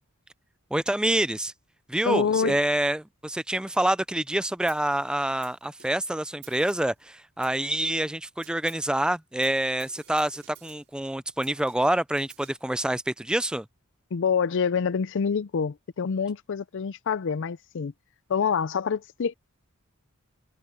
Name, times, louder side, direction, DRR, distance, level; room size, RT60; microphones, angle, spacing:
voice 1, 0.7-1.5 1.9-13.7, right 1 dB, 5° right, 0.3 m, -27 dB
voice 2, 2.1-2.6 14.1-17.9 18.3-19.3, left 6 dB, 60° left, 0.5 m, -26 dB
Snare drum, 4.7-5.0 5.4-6.1 6.4-7.0 7.4-8.1 8.4-9.0 9.4-11.0 11.4-12.7, right 11 dB, 60° right, 5.0 m, -53 dB
head